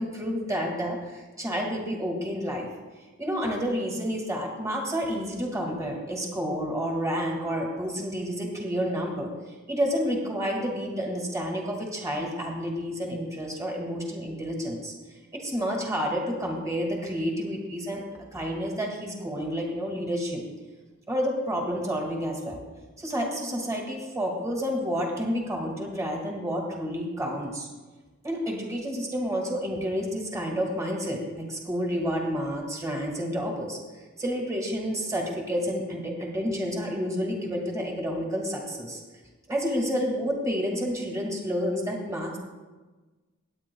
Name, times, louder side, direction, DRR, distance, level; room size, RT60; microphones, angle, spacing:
voice 1, 0.0-2.7 3.2-9.3 9.7-14.9 15.3-18.0 18.3-20.4 21.1-22.6 23.0-27.7 28.2-33.8 34.2-39.0 39.5-42.4, equal, 15° right, -1 dB, 2.0 m, -30 dB
19.0 x 9.1 x 2.3 m, 1.2 s
head